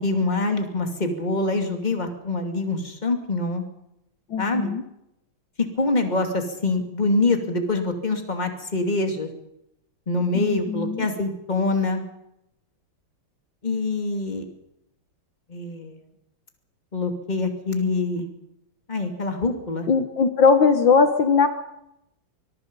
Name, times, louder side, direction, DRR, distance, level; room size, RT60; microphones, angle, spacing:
voice 1, 0.0-3.7 4.4-4.7 5.8-9.3 10.1-12.0 13.6-14.5 15.5-16.0 16.9-18.3 18.9-19.9, left 2 dB, 20° left, 5 dB, 2.6 m, -25 dB
voice 2, 4.3-4.8 10.3-11.1 19.9-21.5, left 5 dB, 65° left, 8 dB, 1.9 m, -19 dB
24.5 x 22.0 x 5.4 m, 0.85 s
omnidirectional pair, 2.3 m